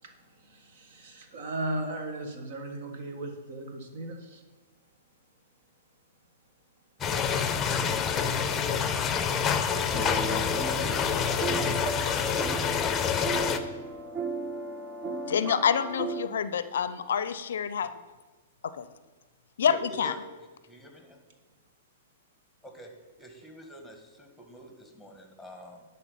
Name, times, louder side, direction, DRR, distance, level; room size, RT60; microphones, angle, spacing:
voice 1, 0.0-4.4 25.5-25.6, right 2 dB, 55° right, 5 dB, 1.5 m, -37 dB
sound 1, 7.0-13.6, left 7 dB, 20° left, 0.7 m, -27 dB
sound 2, 9.9-16.3, right 3 dB, 30° right, 0.7 m, -35 dB
voice 2, 15.2-18.0 18.6-18.9 19.6-20.1, left 7 dB, 70° left, 13 dB, 0.5 m, -27 dB
voice 3, 19.7-20.2 20.7-21.2 22.6-22.9 23.2-25.8, right 1 dB, ahead, 3 dB, 1.8 m, -46 dB
11.0 x 4.3 x 5.7 m, 1.2 s
hypercardioid pair, 115°, 0 cm